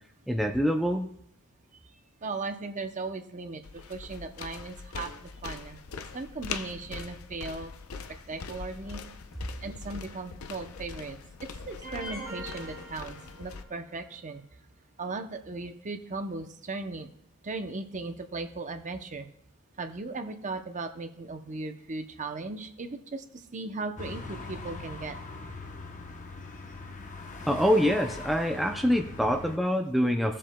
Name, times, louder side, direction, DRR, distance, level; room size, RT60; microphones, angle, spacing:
voice 1, 0.3-1.1 27.5-30.4, equal, ahead, 2 dB, 0.4 m, -25 dB
voice 2, 2.2-5.8 6.1-7.7 8.3-9.0 9.6-14.4 15.0-17.1 17.4-19.3 19.8-25.2, right 3 dB, 35° right, 7 dB, 0.7 m, -37 dB
sound 1, 3.6-13.6, left 5 dB, 80° left, 0.6 m, -42 dB
sound 2, 11.8-13.9, right 1 dB, 20° right, 2.1 m, -42 dB
sound 3, 24.0-29.6, left 3 dB, 35° left, 0.8 m, -41 dB
15.5 x 7.4 x 2.2 m, 0.70 s
head